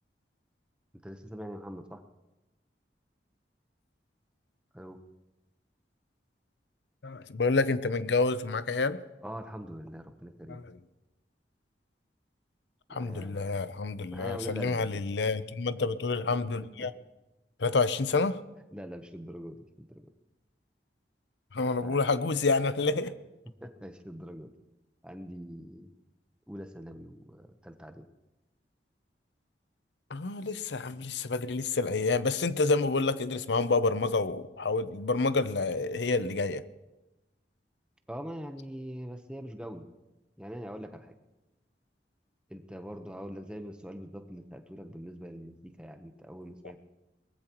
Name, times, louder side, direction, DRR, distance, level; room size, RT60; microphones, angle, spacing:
voice 1, 1.0-2.0 4.7-5.0 9.2-10.6 12.9-13.5 14.1-15.0 16.8-16.9 18.7-20.1 21.8-22.0 22.9-23.1 23.6-24.5 25.0-25.9 26.5-28.0 38.1-39.9 40.4-41.1 42.5-46.8, equal, 5° right, 6 dB, 0.9 m, -43 dB
voice 2, 7.0-9.0 10.5-10.6 12.9-16.9 17.6-18.4 21.5-23.1 30.1-36.6, left 3 dB, 75° left, 14 dB, 0.7 m, -28 dB
22.0 x 19.0 x 3.0 m, 1.0 s
head